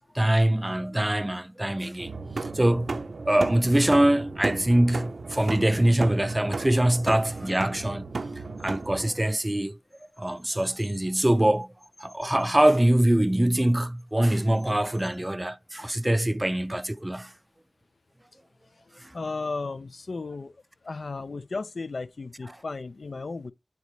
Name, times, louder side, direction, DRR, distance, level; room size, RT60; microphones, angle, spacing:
voice 1, 0.1-2.1 2.4-8.1 8.6-9.8 10.2-11.7 12.0-17.3, right 1 dB, 20° right, 0.4 m, -23 dB
sound 1, 2.0-9.1, right 3 dB, 85° right, 0.7 m, -34 dB
voice 2, 19.1-20.5 20.8-23.5, left 3 dB, 80° left, 0.6 m, -34 dB
10.0 x 4.1 x 3.1 m
wide cardioid pair, 60°, 0 cm